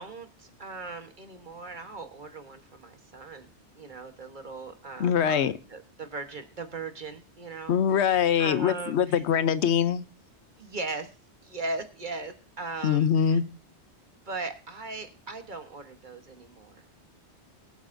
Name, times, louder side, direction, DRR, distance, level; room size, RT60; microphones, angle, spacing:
voice 1, 0.0-9.2 10.6-11.1 11.4-13.4 14.2-16.8, right 3 dB, 45° right, 7 dB, 1.4 m, -39 dB
voice 2, 5.0-5.5 7.7-10.0 12.8-13.4, left 8 dB, 70° left, 14 dB, 1.0 m, -23 dB
21.0 x 8.1 x 2.6 m, 0.37 s
omnidirectional pair, 1.2 m